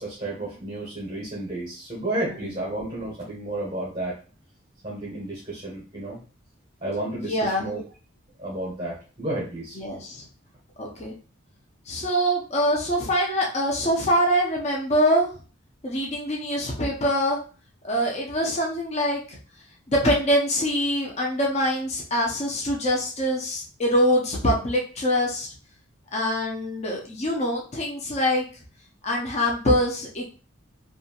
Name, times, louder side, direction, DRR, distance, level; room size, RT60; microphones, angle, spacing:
voice 1, 0.0-4.2 4.8-6.2 6.8-7.8 8.4-9.8, right 1 dB, 25° right, -4 dB, 0.8 m, -32 dB
voice 2, 7.2-7.7 9.8-10.2 10.8-11.1 11.9-15.3 15.8-17.4 17.8-19.2 19.9-25.5 26.1-28.4 29.0-30.3, equal, 30° left, -1 dB, 0.5 m, -24 dB
2.7 x 2.3 x 2.8 m, 0.36 s
head